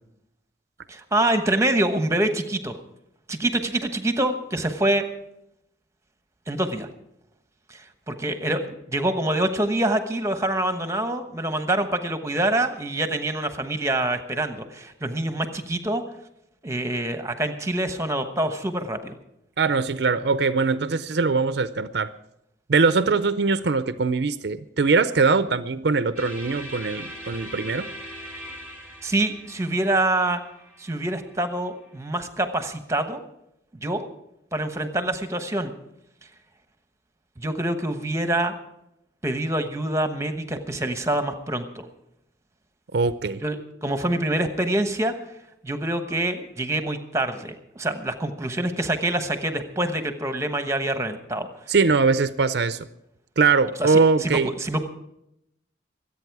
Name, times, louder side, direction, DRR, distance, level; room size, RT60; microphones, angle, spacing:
voice 1, 0.9-2.8 3.3-5.0 6.5-6.9 7.7-16.0 16.6-19.2 29.0-30.4 30.8-33.2 33.8-34.0 34.5-35.7 37.4-38.5 39.2-41.9 43.4-45.1 45.6-51.5 53.8-54.8, right 1 dB, 15° right, 8 dB, 1.1 m, -26 dB
voice 2, 19.6-22.1 22.7-27.9 42.9-43.4 51.7-52.8 53.4-54.5, right 4 dB, 60° right, 13 dB, 0.5 m, -21 dB
sound 1, 26.2-32.1, equal, 5° left, 2.8 m, -41 dB
24.5 x 8.7 x 4.7 m, 0.81 s
head